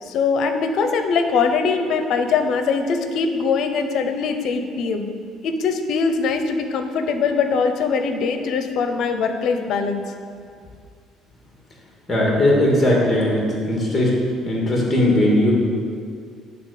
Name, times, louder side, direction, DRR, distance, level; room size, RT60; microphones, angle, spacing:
voice 1, 0.0-5.1 5.4-10.0, left 5 dB, 65° left, 7 dB, 0.8 m, -22 dB
voice 2, 12.1-13.4 13.7-14.1 14.4-15.5, left 1 dB, 20° left, -3 dB, 2.0 m, -18 dB
9.4 x 4.0 x 6.7 m, 2.1 s
cardioid pair, 110°, 0 cm